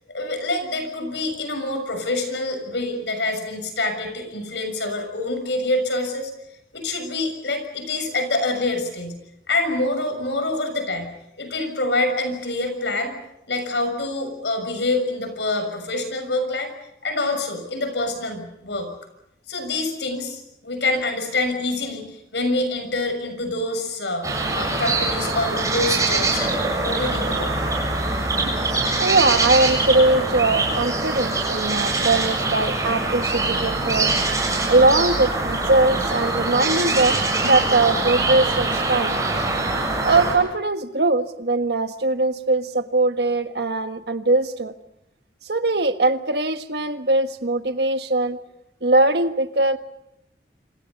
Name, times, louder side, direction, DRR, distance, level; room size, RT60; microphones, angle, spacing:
voice 1, 0.1-6.3 6.7-9.2 9.5-11.1 11.4-13.1 13.5-16.7 17.0-18.9 19.5-24.3 24.5-27.5, left 2 dB, 90° left, 7 dB, 6.7 m, -26 dB
sound 1, 24.2-40.3, right 2 dB, 20° right, 7.4 m, -23 dB
voice 2, 29.0-34.2 34.7-39.2 40.0-44.7 45.5-48.4 48.8-49.8, right 2 dB, 70° right, 8 dB, 1.5 m, -21 dB
27.5 x 27.0 x 5.5 m, 0.83 s
head